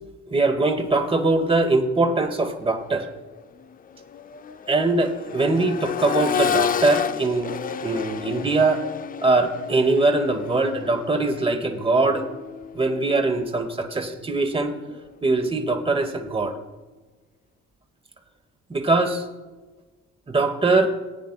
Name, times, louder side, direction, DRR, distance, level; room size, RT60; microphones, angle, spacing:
voice 1, 0.3-3.1 4.7-7.5 7.8-8.8 9.2-12.2 12.7-14.7 15.2-16.5 18.7-19.2 20.3-20.9, right 3 dB, 20° right, 6 dB, 1.1 m, -22 dB
Accelerating revving vroom, 2.7-2.9 3.3-13.2 14.9-15.0, left 8 dB, 30° left, 0.4 m, -31 dB
18.5 x 9.3 x 2.3 m, 1.2 s
cardioid pair, 90°, 30 cm